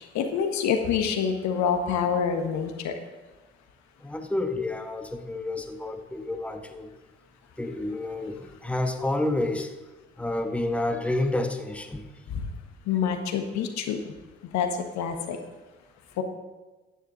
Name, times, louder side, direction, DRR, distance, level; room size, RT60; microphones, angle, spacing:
voice 1, 0.0-2.9 12.3-12.5 12.9-14.1 14.5-15.4 16.2-16.3, left 7 dB, 60° left, 6 dB, 1.3 m, -27 dB
voice 2, 4.0-6.9 7.6-9.7 10.2-12.0, left 2 dB, 5° left, 6 dB, 1.2 m, -29 dB
13.0 x 9.3 x 3.9 m, 1.2 s
hypercardioid pair, 50°, 32 cm